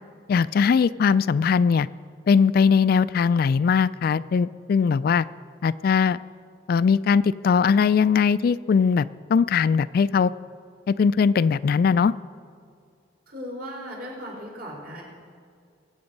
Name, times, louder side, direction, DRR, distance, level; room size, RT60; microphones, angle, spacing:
voice 1, 0.3-1.9 2.3-5.3 5.6-6.2 6.7-10.3 10.9-12.1, left 6 dB, 55° left, 16 dB, 0.3 m, -20 dB
voice 2, 13.3-15.1, equal, 60° right, -2 dB, 4.1 m, -37 dB
22.5 x 8.7 x 5.3 m, 2.3 s
head